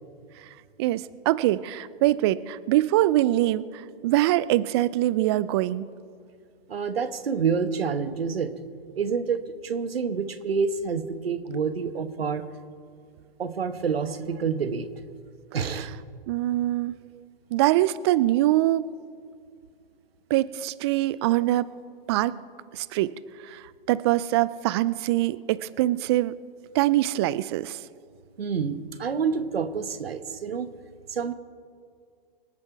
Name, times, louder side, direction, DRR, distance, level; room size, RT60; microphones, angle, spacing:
voice 1, 0.8-5.9 15.7-15.9 16.3-17.0 17.5-18.8 20.3-21.7 22.1-22.4 22.7-23.1 23.4-26.3 26.7-27.8, right 15 dB, 30° right, 18 dB, 0.4 m, -23 dB
voice 2, 6.7-8.5 9.0-12.5 13.4-14.9 15.5-15.9 28.4-30.7 31.1-31.3, right 6 dB, 80° right, 12 dB, 1.2 m, -28 dB
25.0 x 8.8 x 4.7 m, 2.2 s
hypercardioid pair, 120°, 30 cm